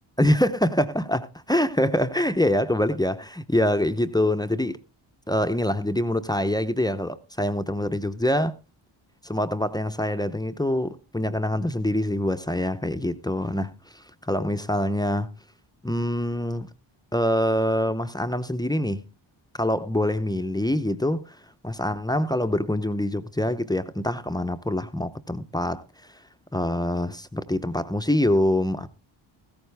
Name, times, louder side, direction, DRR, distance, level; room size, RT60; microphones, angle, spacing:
voice 1, 0.2-4.8 5.3-8.5 9.2-15.3 15.8-16.7 17.1-19.0 19.6-21.4 21.6-25.8 26.5-28.9, left 1 dB, 10° left, 0.6 m, -25 dB
14.5 x 14.0 x 3.3 m
wide cardioid pair, 115°, 49 cm